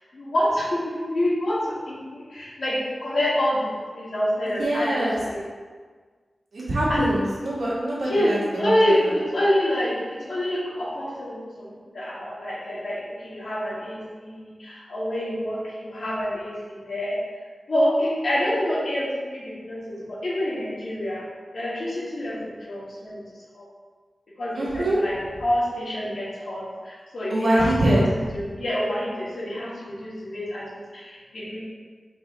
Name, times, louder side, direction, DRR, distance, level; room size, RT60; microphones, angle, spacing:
voice 1, 0.1-5.4 6.9-7.1 8.0-11.7 11.9-17.2 17.7-21.2 21.5-23.2 23.5-23.6 24.4-31.6, left 1 dB, 75° left, -7 dB, 1.5 m, -27 dB
voice 2, 4.6-5.2 6.5-9.0 24.5-25.0 27.3-28.0, right 1 dB, 75° right, -8 dB, 1.5 m, -23 dB
4.8 x 2.8 x 3.6 m, 1.5 s
wide cardioid pair, 115°, 0 cm